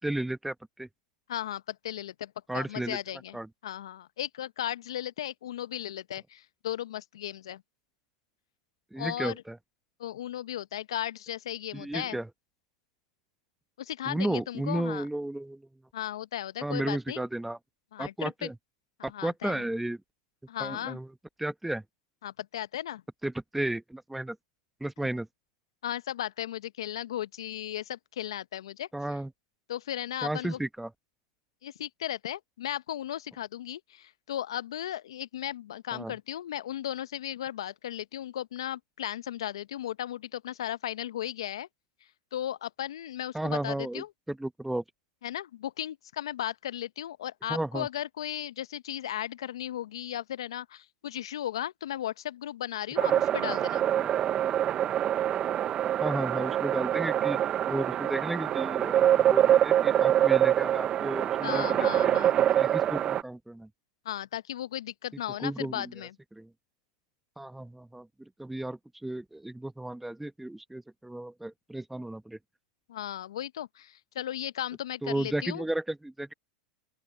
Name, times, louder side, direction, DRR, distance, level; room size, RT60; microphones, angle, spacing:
voice 1, 0.0-0.9 2.5-3.0 3.3-3.5 8.9-9.6 11.7-12.3 14.1-15.6 16.6-17.6 18.0-18.5 19.0-20.0 20.6-21.1 21.4-21.8 23.2-24.4 24.8-25.3 28.9-29.3 30.2-30.9 35.9-36.1 43.3-44.8 47.5-47.9 53.1-53.2 54.0-54.1 56.0-57.4 57.7-62.1 62.6-63.7 65.4-65.9 66.3-66.5 67.4-72.4 75.0-76.3, right 1 dB, 5° right, 1.0 m, -33 dB
voice 2, 1.3-3.4 3.6-7.6 9.0-9.4 10.0-12.2 13.8-15.1 15.9-17.2 17.9-18.5 19.0-19.6 20.5-21.0 22.2-23.0 25.8-28.9 29.7-30.6 31.6-41.7 42.3-44.1 45.2-53.9 61.4-62.7 64.0-66.1 72.9-75.6, left 11 dB, 75° left, 0.7 m, -36 dB
sound 1, 53.0-63.2, right 11 dB, 35° right, 0.6 m, -25 dB
open air
hypercardioid pair, 100°, 3 cm